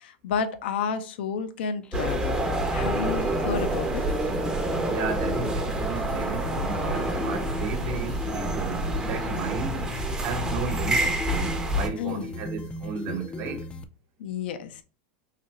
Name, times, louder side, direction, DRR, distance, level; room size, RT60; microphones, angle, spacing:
voice 1, 0.0-2.3 2.7-4.0 12.0-12.4 14.2-14.8, left 6 dB, 80° left, 0.6 m, -31 dB
sound 1, 1.8-13.8, left 2 dB, 20° left, 0.4 m, -37 dB
sound 2, 1.9-11.9, right 1 dB, 15° right, 0.7 m, -28 dB
voice 2, 4.9-10.0 10.2-13.7, right 5 dB, 50° right, 1.0 m, -34 dB
4.0 x 2.6 x 3.0 m
supercardioid pair, 125°, 6 cm